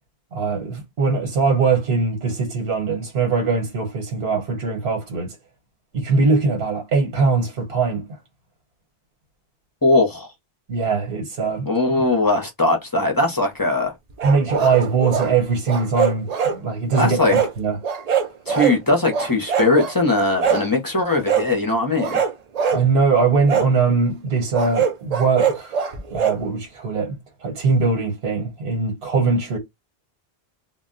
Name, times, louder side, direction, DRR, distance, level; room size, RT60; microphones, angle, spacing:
voice 1, 0.3-5.4 5.9-8.1 10.7-11.7 14.2-17.2 17.6-17.8 22.7-25.8 26.1-29.6, right 4 dB, 80° right, 1.2 m, -21 dB
voice 2, 9.8-10.3 11.7-13.9 17.0-17.4 18.5-22.2, left 2 dB, 25° left, 0.5 m, -20 dB
sound 1, 14.2-15.3 15.7-16.6 16.9-17.5 17.8-18.8 19.1-19.9 20.4-20.7 21.2-21.5 22.0-22.8 23.5-23.7 24.5-26.4, right 7 dB, 50° right, 0.5 m, -22 dB
2.2 x 2.1 x 3.7 m
omnidirectional pair, 1.0 m